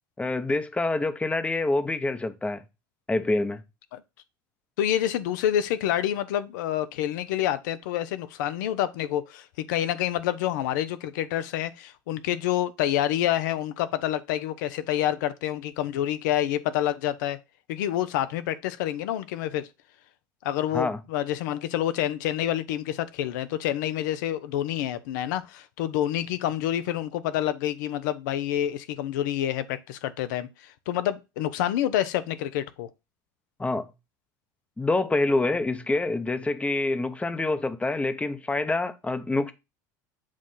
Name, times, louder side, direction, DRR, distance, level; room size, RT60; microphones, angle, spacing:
voice 1, 0.2-2.6 3.1-3.6 20.7-21.0 33.6-33.9 34.8-39.5, left 2 dB, 10° left, 0.7 m, -26 dB
voice 2, 4.8-17.4 17.7-19.7 20.4-30.5 30.9-32.9, left 12 dB, 80° left, 0.6 m, -28 dB
7.4 x 2.5 x 5.5 m
supercardioid pair, 95°, 10 cm